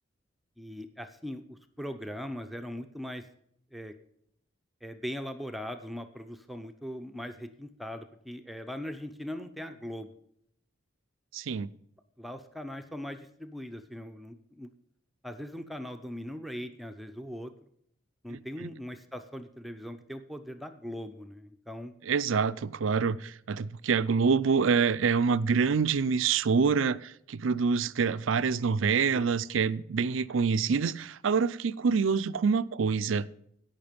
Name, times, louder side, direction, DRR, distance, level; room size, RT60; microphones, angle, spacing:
voice 1, 0.6-3.3 3.7-3.9 4.8-10.1 12.2-14.7 15.2-17.5 18.2-21.9 29.1-29.3, equal, ahead, 0.6 m, -40 dB
voice 2, 11.3-11.7 18.3-18.7 22.1-33.3, right 5 dB, 80° right, 0.5 m, -26 dB
16.5 x 5.9 x 5.2 m
head